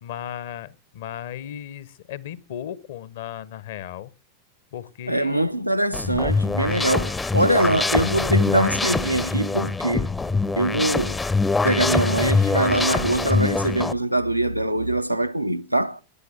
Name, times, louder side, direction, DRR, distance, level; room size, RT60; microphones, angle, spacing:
voice 1, 0.0-4.1 4.7-5.5, left 10 dB, 55° left, 0.9 m, -35 dB
voice 2, 5.1-10.1 10.6-11.2 11.6-16.0, right 1 dB, 90° right, 0.6 m, -23 dB
sound 1, 5.9-13.9, left 3 dB, 10° left, 0.6 m, -23 dB
13.5 x 9.7 x 6.6 m
figure-of-eight pair, 90°, 0 cm